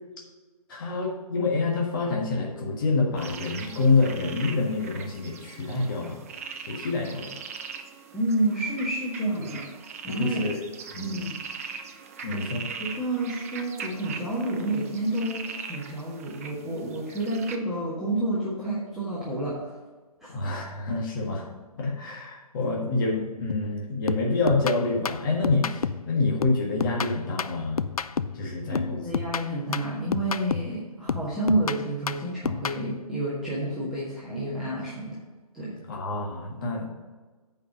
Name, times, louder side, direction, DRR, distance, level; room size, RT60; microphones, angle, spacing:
voice 1, 0.7-6.2 6.6-7.3 10.1-10.6 10.9-11.2 12.2-12.7 20.3-21.5 21.8-27.8 28.3-29.1 35.9-36.8, left 3 dB, 35° left, -2 dB, 1.5 m, -27 dB
sound 1, 3.2-17.6, right 6 dB, 25° right, 0.5 m, -41 dB
voice 2, 8.1-9.6 10.0-10.4 11.0-11.4 12.3-12.4 12.8-19.8 20.2-20.3 28.7-35.2 35.5-35.8, right 1 dB, ahead, -11 dB, 1.5 m, -29 dB
sound 2, 23.5-23.8 24.1-26.1 26.4-28.4 28.7-30.8 31.1-32.8, left 6 dB, 70° left, 0.4 m, -30 dB
8.5 x 5.2 x 5.1 m, 1.3 s
figure-of-eight pair, 140°, 20 cm